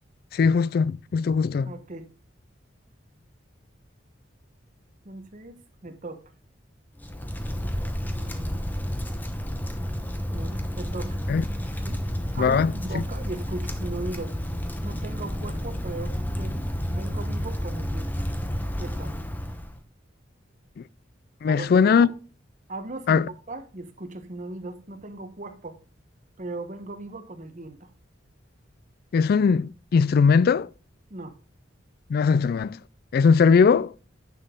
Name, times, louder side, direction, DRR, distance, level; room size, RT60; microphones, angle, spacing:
voice 1, 0.3-1.7 11.3-11.4 12.4-13.0 21.4-22.1 23.1-23.2 29.1-30.7 32.1-32.8 33.1-33.9, left 5 dB, 55° left, 0.3 m, -20 dB
voice 2, 1.6-2.1 5.0-5.6 5.8-6.2 8.1-8.6 10.3-11.2 11.9-12.0 12.3-14.3 14.8-18.3 18.8-19.1 21.5-22.1 22.7-25.8 26.4-27.9 31.1-31.3, right 2 dB, 40° right, 1.2 m, -38 dB
Wind, 7.0-19.8, equal, 10° left, 0.9 m, -31 dB
9.9 x 6.2 x 3.7 m
head